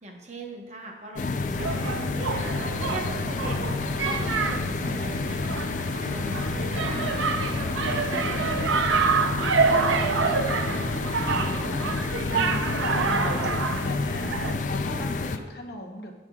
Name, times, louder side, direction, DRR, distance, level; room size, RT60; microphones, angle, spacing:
voice 1, 0.0-5.4 5.8-9.9, right 2 dB, 40° right, 1 dB, 1.0 m, -40 dB
sound 1, 1.2-15.4, left 3 dB, 40° left, 0.3 m, -29 dB
sound 2, 1.6-14.6, right 5 dB, 90° right, 0.5 m, -28 dB
voice 2, 4.7-5.1 10.5-16.1, left 1 dB, 60° left, 3 dB, 0.9 m, -38 dB
sound 3, 8.6-15.4, right 3 dB, 20° left, 2.6 m, -43 dB
10.0 x 7.8 x 2.3 m, 1.1 s
head